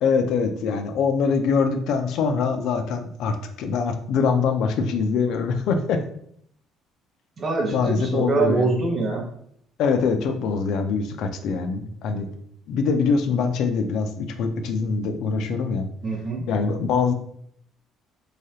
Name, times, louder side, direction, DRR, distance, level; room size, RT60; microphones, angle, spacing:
voice 1, 0.0-6.0 7.7-8.7 9.8-12.3 12.7-15.9 16.5-17.1, left 5 dB, 60° left, 7 dB, 0.3 m, -23 dB
voice 2, 7.4-9.3 16.0-16.5, right 3 dB, 30° right, 0 dB, 0.7 m, -24 dB
3.1 x 2.3 x 2.7 m, 0.67 s
cardioid pair, 165°, 0 cm